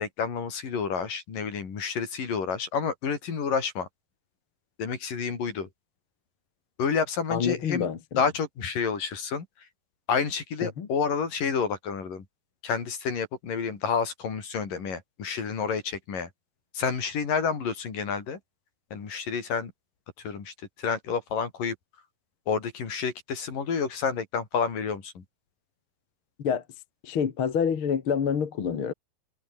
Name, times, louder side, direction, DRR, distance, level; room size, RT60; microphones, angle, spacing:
voice 1, 0.0-3.9 4.8-5.7 6.8-7.9 8.2-9.5 10.1-12.2 12.6-16.3 16.7-18.4 18.9-19.7 20.2-20.5 20.8-21.8 22.5-25.2, left 6 dB, 60° left, 5.6 m, -29 dB
voice 2, 7.3-8.2 10.6-10.9 26.4-26.6 27.0-28.9, left 7 dB, 40° left, 2.2 m, -27 dB
open air
omnidirectional pair, 4.3 m